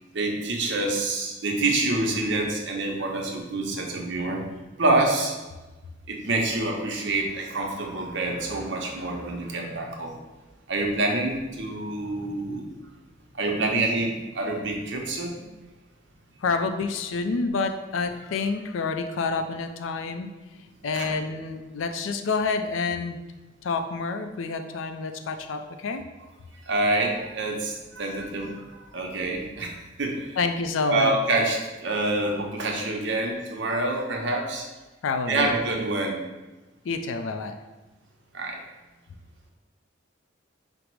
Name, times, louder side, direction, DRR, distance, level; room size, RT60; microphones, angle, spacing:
voice 1, 0.1-4.4 4.8-5.3 6.1-10.1 10.7-12.8 13.3-15.4 20.9-21.1 26.7-30.3 30.9-34.7 35.3-36.2 38.3-38.6, right 2 dB, 70° right, 0 dB, 0.7 m, -27 dB
voice 2, 16.4-20.3 20.8-23.2 23.6-26.0 30.4-31.2 35.0-35.6 36.8-37.6, left 4 dB, 90° left, 7 dB, 0.4 m, -28 dB
5.0 x 2.0 x 4.5 m, 1.2 s
head